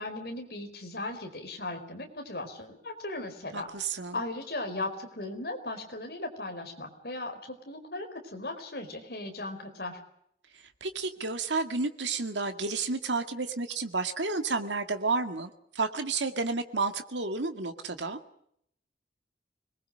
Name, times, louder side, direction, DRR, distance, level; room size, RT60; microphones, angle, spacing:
voice 1, 0.0-3.7 4.1-10.0, left 2 dB, 60° left, 5 dB, 4.5 m, -37 dB
voice 2, 3.5-4.2 10.8-15.5 15.8-18.2, right 3 dB, 90° right, 7 dB, 2.1 m, -31 dB
26.5 x 20.5 x 6.5 m, 0.71 s
head